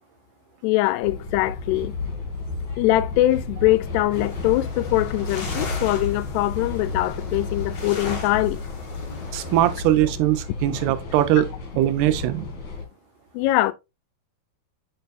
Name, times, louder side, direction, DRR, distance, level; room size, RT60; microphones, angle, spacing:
voice 1, 0.6-2.0 2.8-8.6 13.3-13.7, left 16 dB, 85° left, 2.6 m, -22 dB
sound 1, 1.0-12.8, left 3 dB, 40° left, 2.1 m, -32 dB
sound 2, 4.1-9.8, left 3 dB, 55° left, 1.2 m, -37 dB
voice 2, 9.3-11.5 11.8-12.5, right 13 dB, 80° right, 2.6 m, -21 dB
6.6 x 6.6 x 2.3 m
omnidirectional pair, 4.6 m